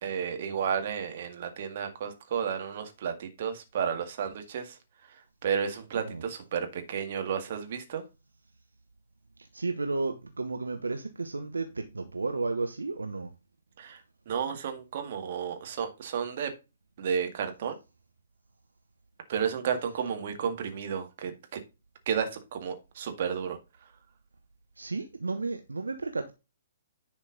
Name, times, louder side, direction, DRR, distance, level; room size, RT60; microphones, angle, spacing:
voice 1, 0.0-4.8 5.1-8.0 13.8-16.5 17.0-17.8 19.3-21.6 22.1-23.6, right 7 dB, 45° right, 2.0 m, -32 dB
voice 2, 9.5-13.3 24.8-26.3, right 3 dB, 75° right, 1.0 m, -33 dB
10.5 x 5.2 x 3.9 m
figure-of-eight pair, 125°, 0 cm